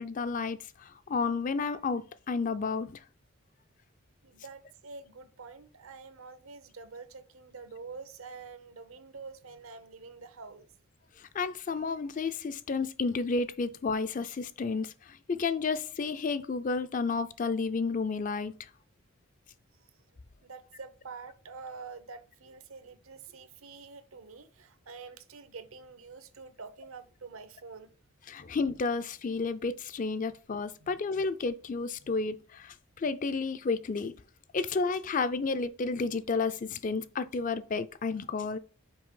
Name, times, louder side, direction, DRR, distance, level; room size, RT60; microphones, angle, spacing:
voice 1, 0.0-3.0 11.2-18.7 28.3-34.1 34.5-38.6, left 4 dB, 35° left, 0.4 m, -31 dB
voice 2, 4.2-10.7 19.7-19.9 20.4-27.9 30.8-31.0 32.0-32.1, right 4 dB, 75° right, 0.8 m, -47 dB
6.0 x 4.6 x 3.7 m
head